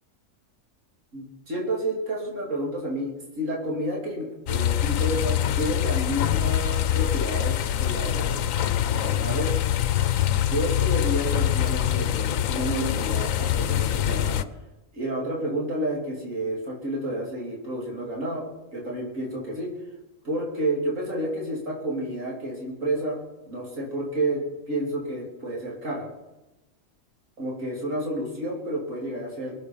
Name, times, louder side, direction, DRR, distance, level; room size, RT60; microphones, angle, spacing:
voice 1, 1.1-8.5 8.9-9.6 10.4-14.5 14.9-18.4 18.7-19.7 20.2-23.2 23.4-26.1 27.4-29.6, right 1 dB, 75° right, -3 dB, 3.7 m, -30 dB
sound 1, 4.5-14.4, left 11 dB, 90° left, 1.1 m, -24 dB
23.0 x 8.0 x 5.6 m, 1.0 s
omnidirectional pair, 1.3 m